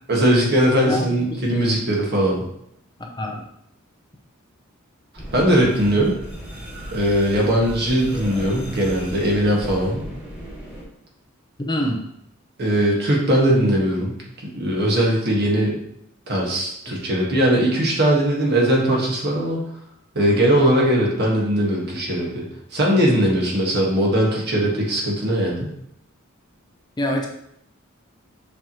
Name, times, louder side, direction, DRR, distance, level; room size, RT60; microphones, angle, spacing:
voice 1, 0.1-2.5 5.3-6.1 6.9-10.1 12.6-14.1 14.4-15.8 16.3-19.6 20.1-22.4 22.7-25.7, right 1 dB, 50° right, -2 dB, 1.6 m, -20 dB
voice 2, 0.8-1.4 3.2-3.5 11.7-12.0 16.9-17.0 27.0-27.3, equal, 20° left, 2 dB, 0.6 m, -25 dB
sound 1, 5.2-10.8, equal, 5° right, 1.7 m, -35 dB
6.8 x 4.6 x 3.0 m, 0.76 s
head